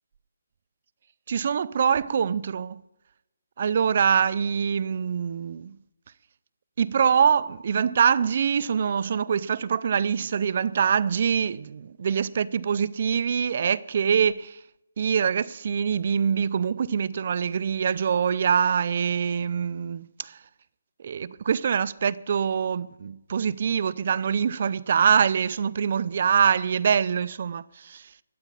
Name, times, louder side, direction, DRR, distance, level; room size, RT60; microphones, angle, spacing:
voice 1, 1.3-2.8 3.6-5.7 6.8-14.6 15.0-20.3 21.0-28.0, right 7 dB, 45° right, 0.4 m, -24 dB
12.5 x 8.7 x 7.2 m
hypercardioid pair, 165°, 0 cm